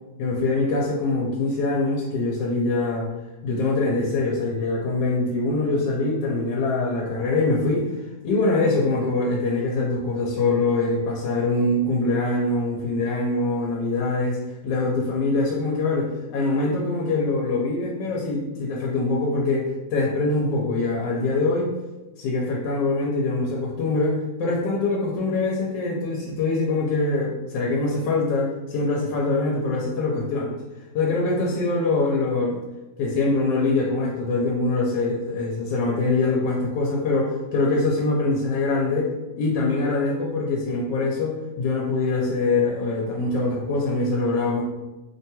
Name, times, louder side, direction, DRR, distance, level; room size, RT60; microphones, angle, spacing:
voice 1, 0.2-3.1 3.4-7.9 8.2-14.4 14.6-21.7 22.2-30.5 30.9-32.6 33.0-44.6, left 3 dB, 90° left, -3 dB, 1.2 m, -23 dB
3.1 x 2.2 x 2.8 m, 1.1 s
omnidirectional pair, 1.9 m